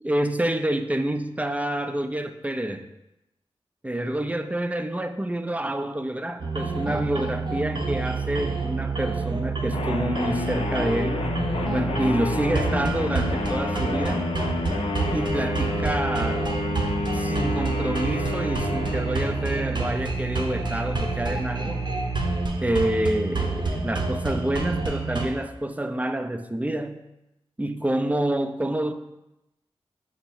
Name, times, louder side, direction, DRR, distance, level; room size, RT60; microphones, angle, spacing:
voice 1, 0.0-2.9 3.8-11.2 11.7-14.3 15.1-16.5 17.1-21.9 22.6-27.0 27.6-28.9, right 1 dB, 15° right, 8 dB, 0.4 m, -28 dB
sound 1, 6.4-25.3, right 3 dB, 45° right, 0.7 m, -28 dB
sound 2, 9.7-20.0, left 3 dB, 65° left, 0.5 m, -30 dB
5.3 x 2.1 x 4.5 m, 0.91 s
cardioid pair, 40°, 11 cm